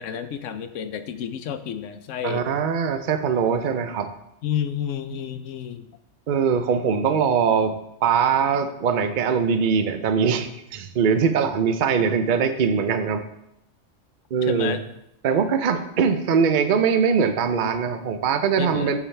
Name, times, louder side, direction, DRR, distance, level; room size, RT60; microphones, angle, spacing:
voice 1, 0.0-2.5 4.4-5.8 14.4-14.8 18.6-18.9, left 8 dB, 80° left, 10 dB, 1.0 m, -30 dB
voice 2, 2.2-4.1 6.3-7.7 8.0-13.2 14.3-14.8 15.2-19.0, right 6 dB, 50° right, 8 dB, 0.7 m, -22 dB
14.0 x 4.8 x 3.3 m, 0.81 s
omnidirectional pair, 1.3 m